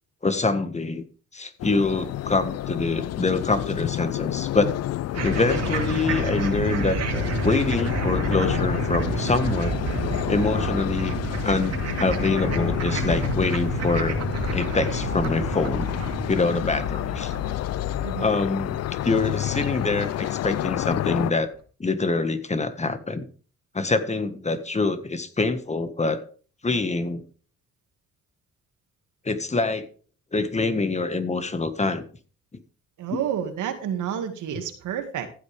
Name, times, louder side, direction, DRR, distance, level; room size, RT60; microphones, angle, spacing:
voice 1, 0.2-1.0 1.3-4.7 5.2-9.8 10.3-11.2 11.4-14.2 14.5-15.9 16.3-17.3 18.2-21.5 21.8-23.3 23.7-26.2 26.6-27.2 29.2-29.9 30.3-32.0 32.5-32.6 33.1-33.2, left 3 dB, 20° left, 9 dB, 1.6 m, -25 dB
sound 1, 1.6-21.3, left 14 dB, 55° left, 0.4 m, -29 dB
sound 2, 5.1-20.5, right 4 dB, 55° right, 2.5 m, -30 dB
voice 2, 33.0-35.3, right 9 dB, 80° right, 6 dB, 2.2 m, -29 dB
15.0 x 8.3 x 3.5 m, 0.39 s
cardioid pair, 90°, 30 cm